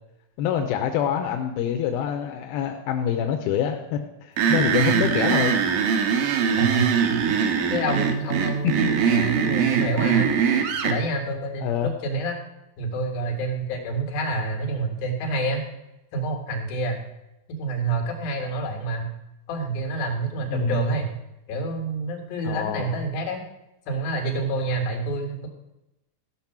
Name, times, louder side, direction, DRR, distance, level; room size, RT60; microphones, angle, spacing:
voice 1, 0.4-5.6 8.6-8.9 11.6-11.9 20.5-20.8 22.4-23.0, left 9 dB, 85° left, 4 dB, 2.6 m, -26 dB
sound 1, 4.4-11.0, right 7 dB, 70° right, 2.3 m, -22 dB
voice 2, 4.8-5.1 6.5-7.3 7.7-10.4 10.8-12.4 12.8-15.6 16.1-17.1 17.6-19.1 19.5-21.2 21.5-23.4 23.9-25.5, right 2 dB, 70° left, 2 dB, 3.5 m, -27 dB
14.5 x 5.9 x 5.9 m, 0.93 s
omnidirectional pair, 4.4 m